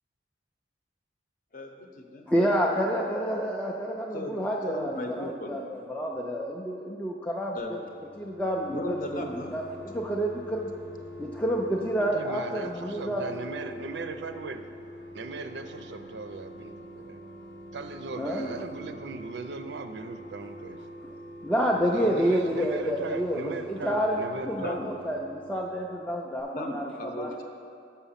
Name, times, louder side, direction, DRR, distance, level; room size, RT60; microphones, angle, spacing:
voice 1, 1.5-2.2 4.1-5.6 7.5-7.8 8.7-9.5 18.4-18.6 24.6-25.0 26.5-27.4, left 1 dB, 45° left, 3 dB, 0.7 m, -36 dB
voice 2, 2.3-7.6 8.2-10.7 11.2-13.2 18.2-18.4 21.4-27.4, equal, 10° left, -2 dB, 0.3 m, -29 dB
sound 1, 7.8-26.1 26.4-26.5, left 1 dB, 85° left, 0.8 m, -45 dB
voice 3, 12.0-14.6 15.1-17.2 17.7-20.8 21.9-24.8, right 4 dB, 65° right, 7 dB, 0.4 m, -38 dB
6.9 x 5.6 x 5.6 m, 2.4 s
head